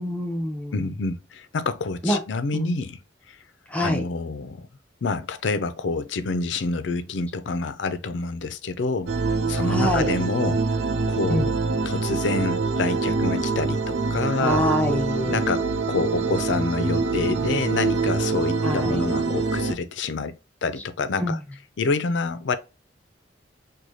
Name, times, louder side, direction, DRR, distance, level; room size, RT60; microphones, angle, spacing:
voice 1, 0.0-0.9 2.0-2.2 2.5-2.7 3.7-4.0 9.6-10.1 11.3-11.5 14.4-15.4 18.6-19.0 21.2-21.4, equal, 10° left, 0.6 m, -25 dB
voice 2, 0.7-3.0 3.3-3.4 3.8-4.7 5.0-9.1 9.5-10.6 11.1-11.5 11.9-14.6 15.3-21.4 21.8-22.6, left 4 dB, 75° left, 0.5 m, -27 dB
sound 1, 9.1-19.7, right 3 dB, 70° right, 0.5 m, -25 dB
4.8 x 2.2 x 2.6 m
head